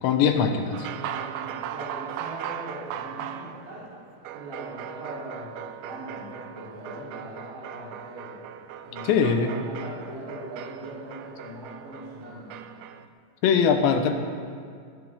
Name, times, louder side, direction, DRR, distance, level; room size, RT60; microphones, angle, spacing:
voice 1, 0.0-0.9 9.1-9.5 13.4-14.1, left 6 dB, 75° left, 6 dB, 2.8 m, -21 dB
sound 1, 0.7-13.1, right 10 dB, 85° right, 3.1 m, -39 dB
voice 2, 1.0-3.9 4.3-8.4 8.8-12.5, right 1 dB, 40° right, -10 dB, 4.5 m, -40 dB
19.0 x 18.5 x 3.6 m, 2.2 s
omnidirectional pair, 5.8 m